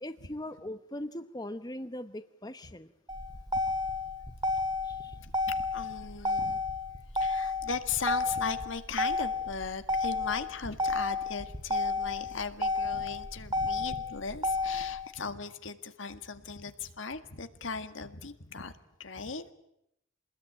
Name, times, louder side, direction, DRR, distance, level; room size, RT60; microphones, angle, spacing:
voice 1, 0.0-2.9 4.8-5.2 7.3-7.5, left 1 dB, 20° left, 10 dB, 1.0 m, -40 dB
Motor vehicle (road), 3.1-15.1, left 3 dB, 20° right, 2.1 m, -31 dB
voice 2, 5.2-6.6 7.1-18.7 19.0-19.4, left 5 dB, 80° left, 9 dB, 1.8 m, -38 dB
27.0 x 21.0 x 9.2 m, 0.80 s
head